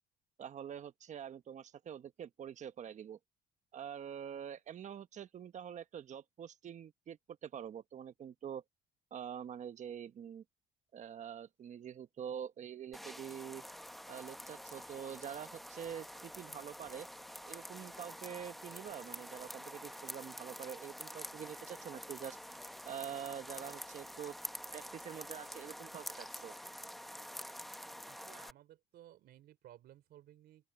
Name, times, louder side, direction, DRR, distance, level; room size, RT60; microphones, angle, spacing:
voice 1, 0.4-3.2 3.7-8.6 9.1-10.4 10.9-13.6 14.1-17.1 17.5-22.4 22.8-24.3 24.7-26.6, right 9 dB, 45° right, 1.1 m, -46 dB
sound 1, 12.9-28.5, equal, ahead, 1.0 m, -48 dB
voice 2, 28.1-30.7, right 13 dB, 70° right, 3.7 m, -58 dB
open air
cardioid pair, 110°, 17 cm